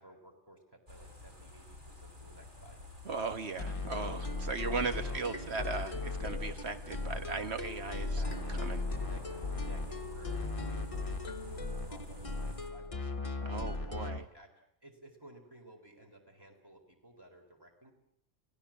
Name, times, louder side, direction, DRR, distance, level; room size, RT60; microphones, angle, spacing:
voice 1, 0.0-2.8 5.0-5.4 8.1-8.6 8.9-9.2 9.7-10.9 11.4-13.2 13.6-14.5 14.8-17.9, right 1 dB, 20° right, 2 dB, 4.1 m, -55 dB
sound 1, 0.9-12.7, equal, 45° right, 4.1 m, -49 dB
voice 2, 3.0-8.2 8.5-8.8 13.4-14.2, right 4 dB, 70° right, 8 dB, 1.7 m, -37 dB
sound 2, 3.6-14.2, left 3 dB, 30° left, 1.2 m, -37 dB
sound 3, 11.3-12.9, left 2 dB, 50° left, 1.4 m, -56 dB
30.0 x 17.0 x 7.4 m, 0.72 s
omnidirectional pair, 1.2 m